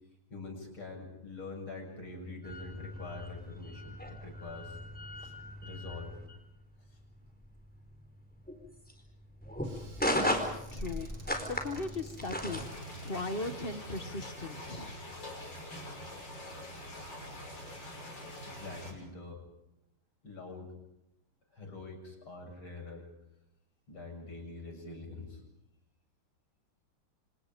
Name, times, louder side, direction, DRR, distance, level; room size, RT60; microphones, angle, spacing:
voice 1, 0.3-4.8 5.2-5.4 5.6-6.1 6.9-7.0 18.5-19.4 20.2-20.7 21.5-23.1 23.9-25.4, left 3 dB, 75° left, 2 dB, 7.9 m, -45 dB
sound 1, 2.4-12.7, equal, 5° left, 4.3 m, -37 dB
Squeak / Cupboard open or close, 9.6-14.9, right 3 dB, 65° right, 5.1 m, -58 dB
voice 2, 10.7-11.1 11.4-12.7 13.0-15.0, left 2 dB, 30° left, 10 dB, 1.3 m, -38 dB
sound 2, 12.5-18.9, left 1 dB, 60° left, 7.2 m, -44 dB
30.0 x 27.0 x 5.2 m, 0.86 s
omnidirectional pair, 2.3 m